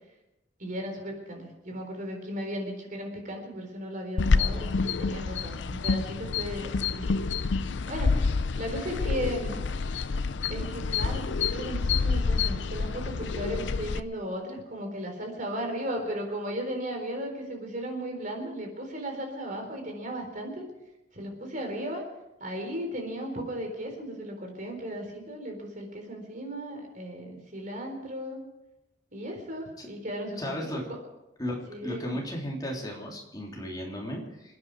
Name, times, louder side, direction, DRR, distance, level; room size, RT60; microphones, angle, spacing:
voice 1, 0.6-7.2 7.9-8.1 8.5-9.6 10.5-20.6 21.1-22.0 22.4-28.4 29.1-31.0 31.7-32.2, equal, 45° right, 2 dB, 4.0 m, -36 dB
sound 1, 4.2-14.0, left 4 dB, 75° left, 0.6 m, -28 dB
voice 2, 30.4-30.9 31.4-34.6, equal, 20° left, -1 dB, 3.2 m, -35 dB
27.5 x 9.5 x 4.7 m, 0.95 s
head